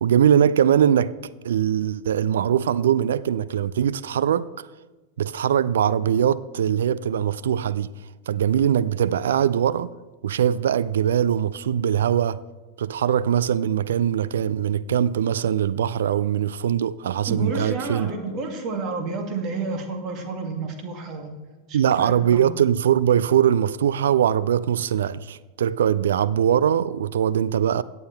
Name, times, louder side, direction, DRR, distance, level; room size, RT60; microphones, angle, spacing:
voice 1, 0.0-1.2 1.4-4.7 5.2-7.9 8.3-9.9 10.2-12.4 12.8-18.1 21.7-27.8, right 9 dB, 60° right, 0.3 m, -21 dB
voice 2, 17.3-22.5, right 3 dB, 35° right, 2.1 m, -30 dB
16.5 x 9.4 x 3.3 m
figure-of-eight pair, 90°, 0 cm